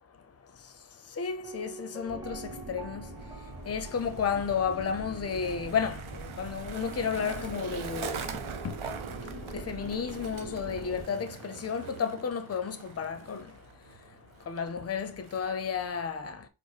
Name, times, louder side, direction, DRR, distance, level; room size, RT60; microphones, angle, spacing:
voice 1, 1.2-3.1 3.7-8.2 8.6-8.8 9.2-13.5 14.5-16.5, left 6 dB, 30° left, 0.5 m, -32 dB
Piano, 1.4-5.2 5.5-5.6, right 4 dB, 5° right, 0.6 m, -48 dB
sound 1, 2.1-11.0, right 2 dB, 40° right, 1.8 m, -43 dB
Skateboard, 3.1-15.9, right 6 dB, 75° right, 0.7 m, -44 dB
5.0 x 2.0 x 4.0 m
wide cardioid pair, 130°, 49 cm